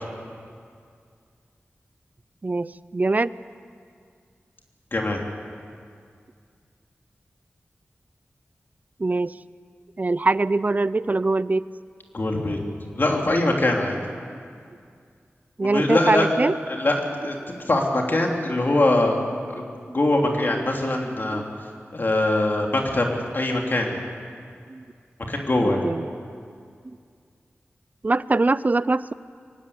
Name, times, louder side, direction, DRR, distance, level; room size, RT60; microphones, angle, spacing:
voice 1, 2.4-3.3 9.0-9.3 10.0-11.6 15.6-16.5 19.9-20.0 21.3-21.4 24.7-24.8 25.6-26.0 28.0-29.1, right 3 dB, 40° right, 17 dB, 0.5 m, -23 dB
voice 2, 12.1-12.6 12.9-14.0 15.6-16.4 16.7-16.9 17.2-19.2 19.5-19.7 19.9-21.4 21.9-23.1 23.3-24.0 25.3-25.9, left 2 dB, 50° left, 1 dB, 3.2 m, -22 dB
23.5 x 18.5 x 8.6 m, 2.2 s
wide cardioid pair, 80°, 4 cm